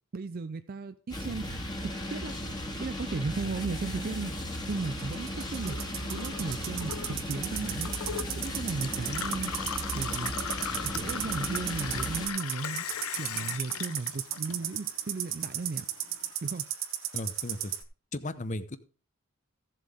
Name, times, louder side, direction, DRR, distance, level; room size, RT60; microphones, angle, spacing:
voice 1, 0.1-1.5 1.8-2.4 2.8-4.3 4.7-5.8 6.1-7.9 8.3-9.5 9.9-10.3 10.8-12.9 13.2-15.9 16.4-16.7, right 4 dB, 45° right, 10 dB, 0.4 m, -35 dB
sound 1, 1.1-12.3, equal, 20° left, 1.8 m, -36 dB
sound 2, 4.4-17.8, right 12 dB, 60° right, 1.2 m, -35 dB
Gurgling / Water tap faucet / Sink (filling or washing), 5.5-15.0 15.3-16.2, left 8 dB, 90° left, 0.8 m, -39 dB
voice 2, 17.1-17.7 18.1-18.8, left 1 dB, 35° left, 13 dB, 0.8 m, -35 dB
15.5 x 7.5 x 3.5 m, 0.38 s
head